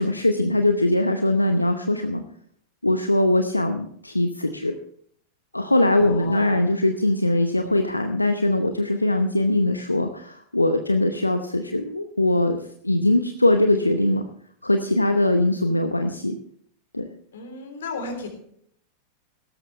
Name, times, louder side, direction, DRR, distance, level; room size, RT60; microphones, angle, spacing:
voice 1, 0.0-2.2 2.8-4.7 5.5-12.6 12.8-14.2 14.6-16.4 16.9-17.1, left 1 dB, 85° left, 7 dB, 0.8 m, -21 dB
voice 2, 6.0-6.6 17.3-18.3, left 3 dB, 65° left, 6 dB, 3.5 m, -34 dB
17.0 x 13.0 x 3.2 m, 0.65 s
figure-of-eight pair, 90°, 0 cm